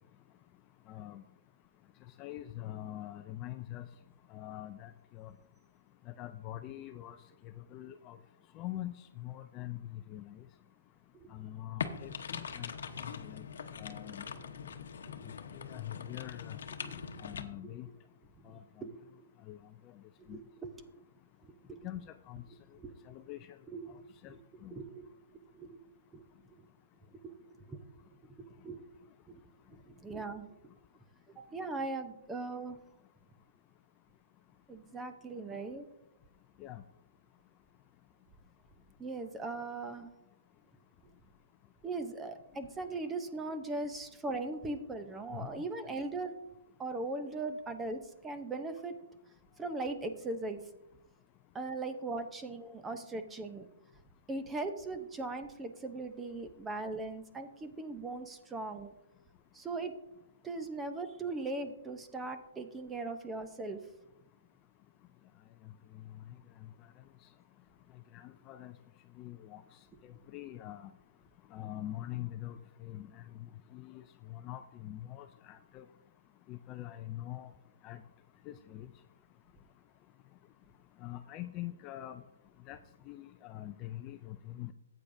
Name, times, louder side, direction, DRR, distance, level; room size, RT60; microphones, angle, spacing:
voice 1, 0.9-1.2 2.2-3.9 4.3-5.3 6.1-7.2 7.4-8.2 8.5-10.4 11.3-12.7 13.0-13.4 13.8-14.2 15.5-16.6 17.2-17.9 18.5-18.9 19.5-19.6 20.3-20.4 21.8-22.4 23.1-23.4 24.2-24.3 24.6-24.7 36.6-36.8 45.4-45.5 68.1-68.7 69.2-69.6 70.0-70.9 71.5-73.2 73.7-74.0 74.3-75.8 76.5-77.5 77.8-78.0 78.5-78.9 81.0-82.2 82.7-82.8 83.1-84.7, left 14 dB, 25° left, 9 dB, 0.4 m, -44 dB
sound 1, 11.8-17.4, left 6 dB, 70° left, 0.9 m, -42 dB
voice 2, 16.8-17.2 18.4-19.0 20.2-20.7 21.7-21.9 22.8-22.9 23.7-24.0 24.3-24.4 24.7-25.1 25.5-25.8 26.1-26.2 27.2-27.8 28.2-28.4 28.6-28.8 29.3-29.4 29.7-30.5 31.4-32.8 34.7-35.9 39.0-40.1 41.8-46.3 46.8-48.9 49.6-50.6 51.5-53.7 54.3-58.9 59.5-60.0 60.4-63.8, right 3 dB, 10° right, 9 dB, 0.7 m, -39 dB
14.5 x 8.6 x 2.6 m, 0.90 s
hypercardioid pair, 155°, 0 cm